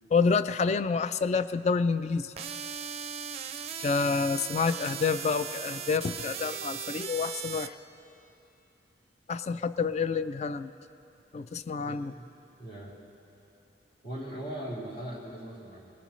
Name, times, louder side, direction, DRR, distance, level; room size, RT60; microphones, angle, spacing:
voice 1, 0.1-2.3 3.8-7.7 9.3-10.7 11.3-12.1, left 5 dB, 40° left, 13 dB, 0.3 m, -28 dB
sound 1, 2.4-7.7, right 8 dB, 35° right, 0.5 m, -38 dB
voice 2, 11.8-12.3 12.6-12.9 14.0-15.8, right 1 dB, 60° left, -5 dB, 3.2 m, -39 dB
20.0 x 19.0 x 3.1 m, 2.7 s
head